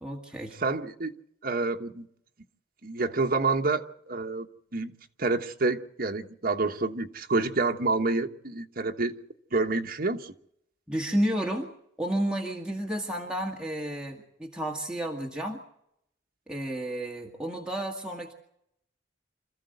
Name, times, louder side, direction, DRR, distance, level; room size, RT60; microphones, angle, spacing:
voice 1, 0.0-0.6 10.9-11.7 12.0-15.6 16.5-18.3, right 1 dB, 5° right, 1.9 m, -31 dB
voice 2, 0.6-1.1 1.4-2.1 2.8-4.5 4.7-4.9 5.2-9.1 9.5-10.3, right 3 dB, 50° right, 1.3 m, -28 dB
26.5 x 14.5 x 7.9 m
head